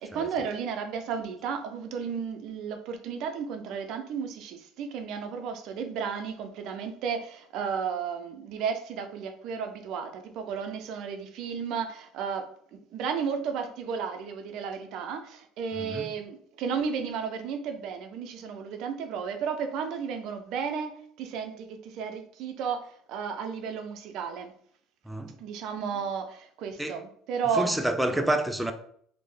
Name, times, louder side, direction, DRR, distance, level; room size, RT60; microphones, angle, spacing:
voice 1, 0.0-24.5 25.4-27.8 28.1-28.2, right 6 dB, 65° right, 0.5 m, -33 dB
voice 2, 27.6-28.7, right 1 dB, 5° right, 0.3 m, -28 dB
3.3 x 2.1 x 3.2 m
supercardioid pair, 80°, 0 cm